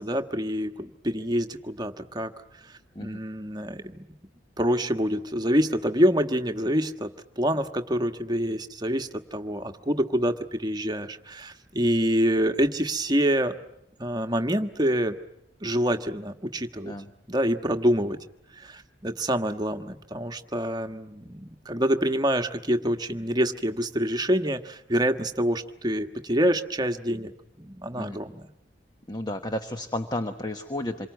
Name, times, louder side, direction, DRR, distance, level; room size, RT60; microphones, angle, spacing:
voice 1, 0.0-2.3 3.0-4.0 4.6-7.1 7.4-13.5 14.0-15.2 15.6-16.9 17.3-18.2 18.6-27.3 27.6-28.4, equal, 25° right, 6 dB, 1.4 m, -26 dB
voice 2, 29.1-31.1, left 1 dB, 25° left, 7 dB, 1.1 m, -32 dB
27.5 x 23.5 x 9.4 m, 0.80 s
head